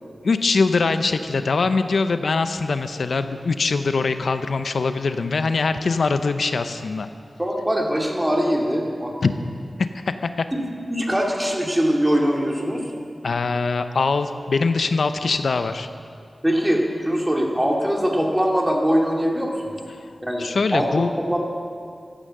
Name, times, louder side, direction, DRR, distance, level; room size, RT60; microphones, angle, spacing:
voice 1, 0.2-7.1 9.2-9.3 10.1-10.5 13.2-15.9 20.0-20.1 20.4-21.1, left 4 dB, 85° left, 9 dB, 0.6 m, -22 dB
voice 2, 7.4-9.1 10.5-10.6 10.9-12.9 16.4-19.8 20.2-21.4, equal, 10° right, 0 dB, 2.3 m, -22 dB
14.5 x 10.0 x 7.6 m, 2.3 s
wide cardioid pair, 75°, 0 cm